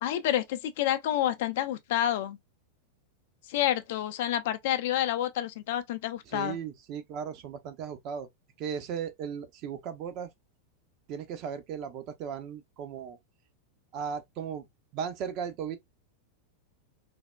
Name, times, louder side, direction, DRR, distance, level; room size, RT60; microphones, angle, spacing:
voice 1, 0.0-2.4 3.5-6.6, left 12 dB, 50° left, 0.4 m, -29 dB
voice 2, 6.3-8.3 8.6-10.3 11.1-13.2 13.9-14.7 14.9-15.8, right 7 dB, 40° right, 0.6 m, -36 dB
3.3 x 2.1 x 2.2 m
figure-of-eight pair, 90°, 0 cm